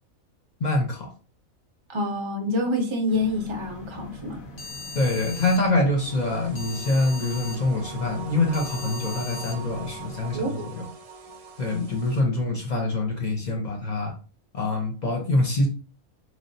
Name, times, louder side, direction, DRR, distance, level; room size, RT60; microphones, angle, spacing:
voice 1, 0.6-1.1 4.9-10.8 11.6-14.1 14.5-15.7, left 2 dB, 40° left, 1 dB, 0.7 m, -25 dB
voice 2, 1.9-4.4 10.3-10.6, left 1 dB, 30° right, 3 dB, 0.6 m, -27 dB
sound 1, 3.1-10.4, left 3 dB, 70° left, 1.2 m, -40 dB
sound 2, 6.0-12.2, right 4 dB, 55° right, 0.9 m, -42 dB
3.9 x 3.2 x 2.6 m, 0.35 s
omnidirectional pair, 1.5 m